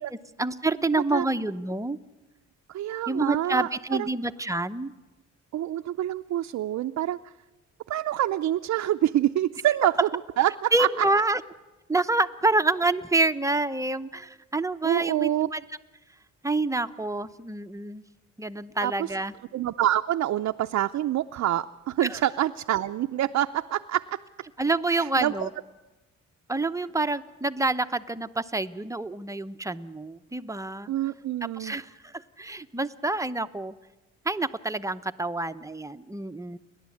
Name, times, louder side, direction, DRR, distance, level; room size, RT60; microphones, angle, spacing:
voice 1, 0.1-2.0 3.1-4.9 10.7-11.4 11.9-15.6 16.4-18.0 18.4-19.3 22.0-22.2 24.6-25.5 26.5-30.9 31.6-33.7 34.2-36.6, right 2 dB, 10° right, 10 dB, 0.8 m, -27 dB
voice 2, 0.9-1.2 2.7-3.7 4.0-4.1 5.5-7.2 7.9-10.1 10.4-11.1 14.8-15.5 18.8-19.1 19.5-24.2 24.9-25.5 30.9-31.8, right 12 dB, 60° right, 5 dB, 0.6 m, -26 dB
30.0 x 11.5 x 8.5 m, 1.2 s
cardioid pair, 90°, 30 cm